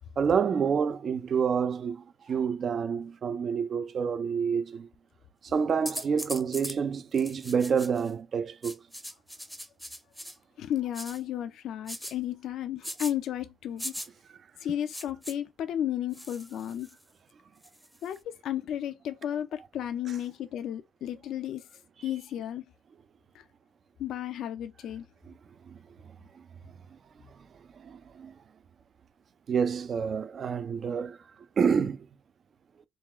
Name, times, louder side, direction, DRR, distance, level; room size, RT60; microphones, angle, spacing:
voice 1, 0.2-4.9 5.4-8.8 25.7-25.8 26.4-26.5 27.8-28.3 29.5-31.2 31.6-32.1, right 6 dB, 50° right, 0.4 m, -28 dB
sound 1, 5.9-6.8 7.1-8.1 8.6-10.4 10.9-11.2 11.9-12.1 12.8-13.1 13.8-14.1 14.9-15.3 16.1-17.0 17.6-18.2, equal, ahead, 0.6 m, -40 dB
voice 2, 10.6-14.0 14.6-16.9 18.0-21.7 22.0-22.6 23.3-23.4 24.0-25.1, left 10 dB, 75° left, 0.3 m, -33 dB
3.8 x 2.3 x 2.9 m
cardioid pair, 90°, 0 cm